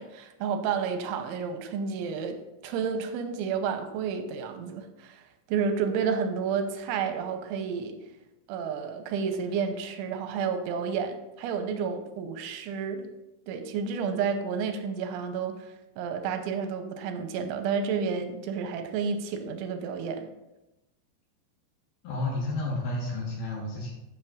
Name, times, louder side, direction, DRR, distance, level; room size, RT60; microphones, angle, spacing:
voice 1, 0.0-8.0 8.5-13.1 13.5-20.3, right 6 dB, 90° right, 7 dB, 3.1 m, -31 dB
voice 2, 22.0-23.9, left 2 dB, 65° left, -2 dB, 2.9 m, -31 dB
12.0 x 7.9 x 2.5 m, 0.95 s
omnidirectional pair, 5.5 m